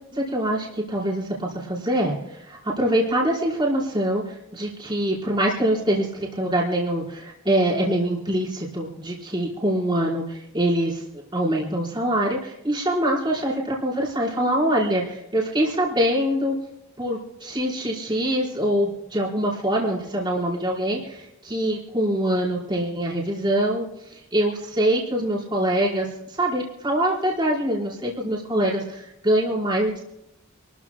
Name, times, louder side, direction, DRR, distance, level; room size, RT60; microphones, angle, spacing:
voice 1, 0.1-16.6 17.0-30.0, right 1 dB, 20° right, -4 dB, 4.5 m, -24 dB
28.5 x 13.5 x 2.3 m, 0.88 s
head